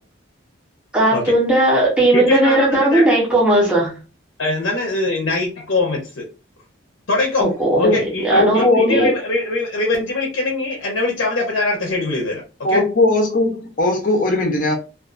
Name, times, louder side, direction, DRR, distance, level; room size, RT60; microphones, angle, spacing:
voice 1, 0.9-3.9 7.4-7.9 8.2-9.1, right 1 dB, 5° right, 0.7 m, -17 dB
voice 2, 2.1-3.1 4.4-6.3 7.1-7.5 7.8-12.8, left 2 dB, 85° left, 0.6 m, -22 dB
voice 3, 8.3-9.1 12.6-14.7, left 1 dB, 45° left, 0.6 m, -18 dB
2.4 x 2.4 x 2.4 m
head